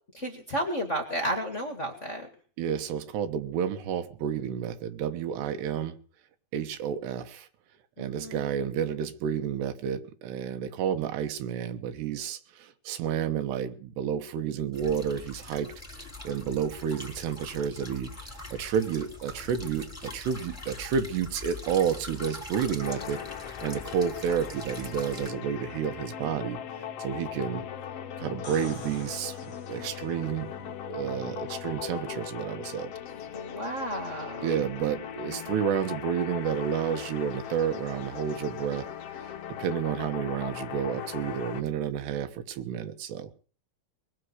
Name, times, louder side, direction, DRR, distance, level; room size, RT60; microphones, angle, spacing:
voice 1, 0.1-2.3 8.0-8.5 33.3-34.6, right 1 dB, 35° left, 1.2 m, -32 dB
voice 2, 2.6-6.0 6.5-7.5 8.0-26.6 27.0-27.6 28.2-30.5 30.9-32.9 34.4-38.9 39.2-39.3 39.6-43.3, right 8 dB, 85° right, 3.4 m, -30 dB
sound 1, 14.7-25.3, left 2 dB, 5° left, 2.6 m, -43 dB
sound 2, 22.8-41.6, left 9 dB, 85° left, 1.3 m, -39 dB
sound 3, 28.2-30.2 33.9-34.0, left 4 dB, 50° left, 0.8 m, -46 dB
21.0 x 7.6 x 8.0 m
omnidirectional pair, 4.7 m